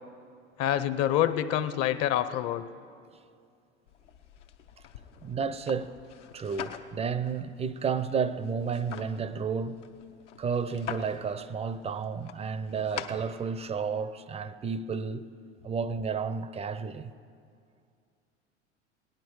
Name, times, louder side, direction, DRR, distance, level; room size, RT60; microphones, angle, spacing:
voice 1, 0.6-2.6 12.8-12.9, left 11 dB, 45° left, 0.7 m, -27 dB
sound 1, 3.9-13.8, left 8 dB, 80° left, 0.8 m, -45 dB
voice 2, 5.2-6.0 6.3-9.8 10.4-15.2 15.6-17.1, right 5 dB, 20° right, 0.5 m, -32 dB
18.0 x 10.5 x 4.7 m
hypercardioid pair, 85°, 35 cm